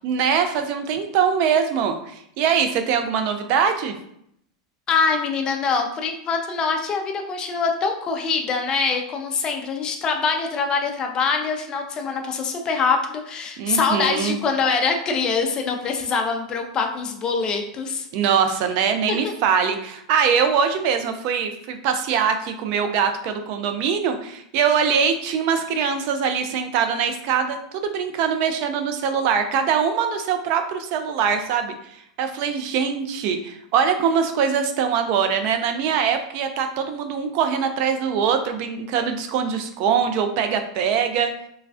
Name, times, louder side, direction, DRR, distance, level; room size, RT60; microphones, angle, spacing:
voice 1, 0.0-3.9 13.6-14.4 18.1-31.7 32.2-41.3, right 7 dB, 50° right, 7 dB, 0.3 m, -22 dB
voice 2, 4.9-18.1 19.1-19.3, left 5 dB, 25° left, 4 dB, 0.4 m, -24 dB
3.1 x 2.3 x 2.5 m, 0.72 s
supercardioid pair, 145°, 3 cm